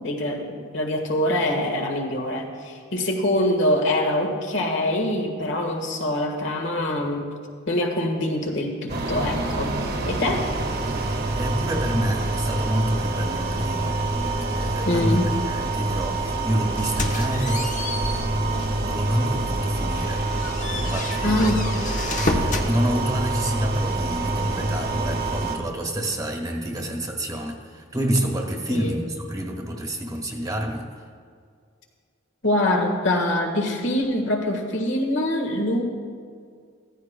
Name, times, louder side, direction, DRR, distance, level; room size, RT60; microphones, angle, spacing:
voice 1, 0.0-7.3 7.7-9.7 10.1-10.5 14.9-15.3 21.2-21.6 28.7-29.0 32.4-35.8, left 1 dB, 65° left, 3 dB, 1.5 m, -24 dB
sound 1, 8.9-25.6, right 2 dB, 55° right, 1.6 m, -26 dB
voice 2, 11.1-21.5 22.2-31.0, right 1 dB, 20° right, 1 dB, 1.3 m, -29 dB
sound 2, 16.8-18.9 19.3-19.4 19.9-22.7, left 2 dB, 40° left, 1.0 m, -30 dB
15.5 x 14.5 x 2.2 m, 2.1 s
head